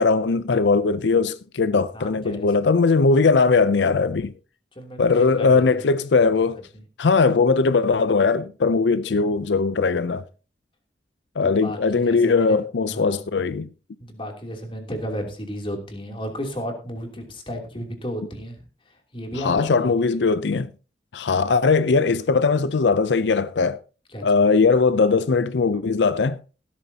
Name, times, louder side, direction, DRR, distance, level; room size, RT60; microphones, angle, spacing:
voice 1, 0.0-4.3 5.0-6.6 7.0-10.2 11.4-13.7 19.4-20.7 21.1-23.8 24.2-26.4, left 4 dB, 90° left, 0.5 m, -20 dB
voice 2, 1.9-2.7 4.7-5.8 6.2-6.3 11.4-12.6 12.9-13.2 14.0-18.6 19.1-19.9 24.1-24.2, equal, 30° left, 3.0 m, -33 dB
16.5 x 13.0 x 2.8 m
head